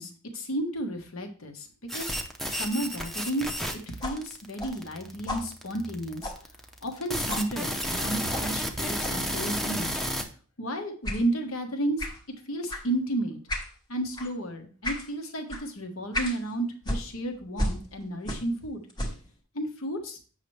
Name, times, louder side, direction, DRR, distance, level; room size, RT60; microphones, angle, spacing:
voice 1, 0.0-1.7 1.9-2.2 2.5-6.3 6.8-10.0 10.6-12.1 12.5-13.4 13.9-18.8 19.5-20.2, right 1 dB, 70° left, 5 dB, 1.3 m, -32 dB
sound 1, 1.9-10.2, equal, ahead, 0.6 m, -31 dB
sound 2, 4.0-7.0 7.3-7.5 8.3-8.5 9.0-9.2 9.9-10.2 11.0-11.2 12.0-12.2 12.7-12.9 13.5-13.7 14.1-14.3 14.8-15.1 15.5-15.6 16.1-16.4 16.8-18.6 18.9-19.3, equal, 20° left, 1.0 m, -35 dB
8.2 x 5.8 x 3.2 m, 0.40 s
head